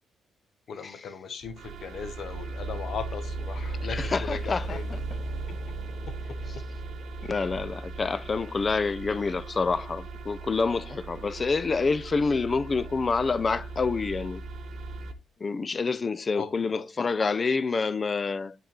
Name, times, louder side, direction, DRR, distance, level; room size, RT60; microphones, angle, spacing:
voice 1, 0.7-4.9 5.5-5.6 6.1-6.4 16.3-16.8, left 6 dB, 60° left, 1.1 m, -38 dB
sound 1, 1.4-15.1, right 3 dB, 65° right, 1.0 m, -37 dB
voice 2, 3.9-5.0 7.3-14.4 15.4-18.5, left 4 dB, 35° left, 0.4 m, -27 dB
8.3 x 3.8 x 4.3 m
cardioid pair, 90°, 0 cm